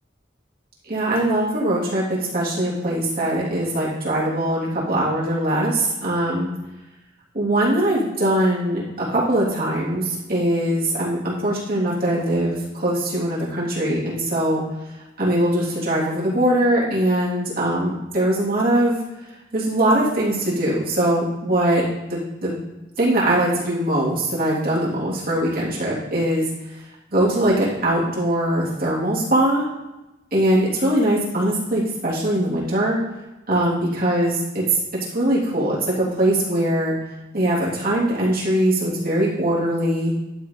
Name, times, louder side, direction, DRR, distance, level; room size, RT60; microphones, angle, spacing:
voice 1, 0.9-6.5 7.3-14.6 15.2-19.0 19.5-21.8 22.1-22.6 23.0-26.5 27.1-29.6 30.3-33.0 33.5-34.8 35.1-36.9 37.3-40.1, right 1 dB, 55° right, -7 dB, 3.3 m, -21 dB
12.0 x 4.7 x 4.3 m, 1.0 s
head